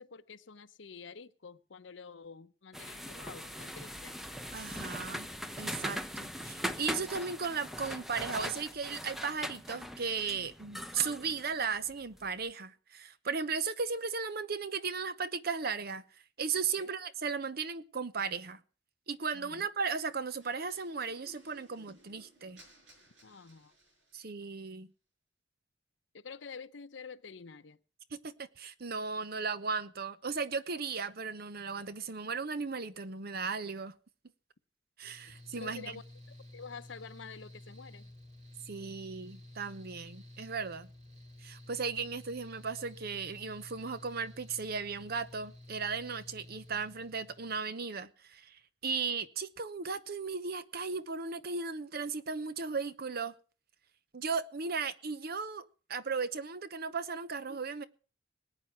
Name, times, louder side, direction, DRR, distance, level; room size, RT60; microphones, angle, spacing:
voice 1, 0.0-4.2 16.8-16.9 19.3-19.7 23.2-23.7 26.1-27.8 35.6-36.0 36.5-38.1, left 5 dB, 70° left, 0.7 m, -48 dB
sound 1, 2.7-12.3, equal, ahead, 0.8 m, -41 dB
voice 2, 4.5-5.3 5.6-16.0 16.4-18.6 19.1-22.6 24.1-24.9 28.1-33.9 35.0-35.9 38.7-40.9 41.4-53.3 54.1-55.6 55.9-57.8, right 5 dB, 55° right, 0.8 m, -36 dB
sound 2, 20.4-24.3, right 2 dB, 70° right, 5.8 m, -60 dB
Mechanical fan, 35.0-47.6, left 1 dB, 40° right, 2.9 m, -52 dB
19.0 x 8.9 x 5.8 m
head